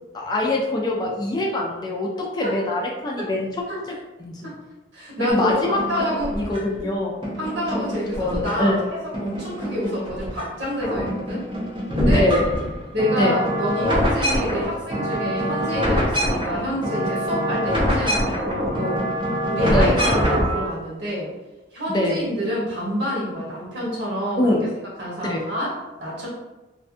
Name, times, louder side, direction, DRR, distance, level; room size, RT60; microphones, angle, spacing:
voice 1, 0.1-3.5 4.2-4.5 5.2-7.2 8.2-8.9 12.1-12.4 13.2-13.4 19.6-20.0 21.9-22.2 24.4-24.6 25.2-25.5, left 1 dB, 20° left, -2 dB, 0.3 m, -23 dB
voice 2, 4.9-6.3 7.4-11.4 11.9-12.2 12.9-19.0 19.5-21.3 21.7-24.6 25.0-25.7 26.0-26.3, equal, 70° right, -6 dB, 1.1 m, -27 dB
sound 1, 5.3-6.8 7.2-8.8 9.1-10.4 10.7-20.7, equal, 25° right, 0.6 m, -25 dB
2.5 x 2.2 x 2.5 m, 1.1 s
head